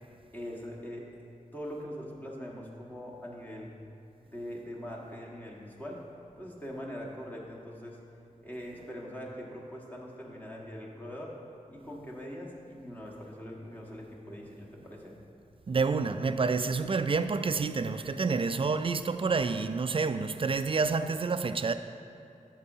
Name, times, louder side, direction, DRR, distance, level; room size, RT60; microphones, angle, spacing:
voice 1, 0.3-3.7 4.3-6.1 6.4-8.0 8.4-11.3 11.7-15.1, equal, 15° left, 1.6 m, -42 dB
voice 2, 15.7-21.7, right 4 dB, 45° right, 0.4 m, -28 dB
10.5 x 7.6 x 2.8 m
wide cardioid pair, 60°, 13 cm